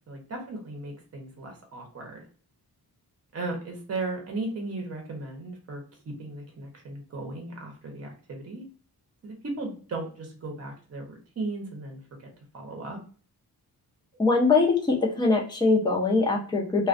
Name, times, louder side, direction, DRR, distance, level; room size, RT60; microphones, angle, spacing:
voice 1, 0.1-2.2 3.3-8.6 9.2-12.0 12.5-13.0, right 2 dB, 40° right, 2 dB, 0.8 m, -36 dB
voice 2, 14.2-16.9, left 3 dB, 10° left, -1 dB, 0.5 m, -22 dB
2.2 x 2.2 x 2.5 m, 0.40 s
wide cardioid pair, 130°, 39 cm